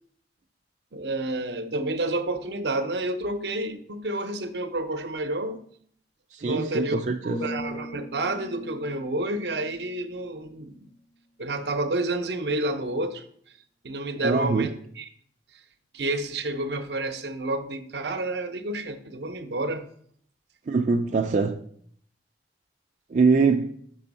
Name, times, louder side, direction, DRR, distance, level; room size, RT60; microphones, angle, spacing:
voice 1, 0.9-5.6 6.4-10.8 11.4-13.2 13.8-15.0 15.9-19.8, right 2 dB, 70° right, 8 dB, 0.8 m, -29 dB
voice 2, 6.3-7.4 14.2-14.7 20.7-21.6 23.1-23.7, right 4 dB, 45° right, 3 dB, 0.4 m, -23 dB
sound 1, 7.3-11.3 11.6-12.0, left 1 dB, 30° left, 0.3 m, -40 dB
6.1 x 5.3 x 5.4 m, 0.63 s
head